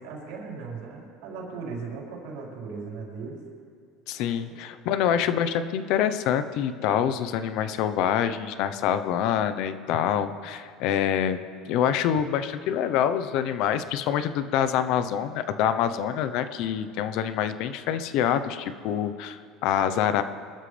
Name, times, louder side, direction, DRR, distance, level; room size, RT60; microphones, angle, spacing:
voice 1, 0.0-3.4 4.5-4.6 5.0-5.2, right 4 dB, 70° right, -3 dB, 4.7 m, -38 dB
voice 2, 4.1-20.2, left 9 dB, 60° left, 11 dB, 0.9 m, -26 dB
25.0 x 13.0 x 3.4 m, 2.2 s
supercardioid pair, 125°, 0 cm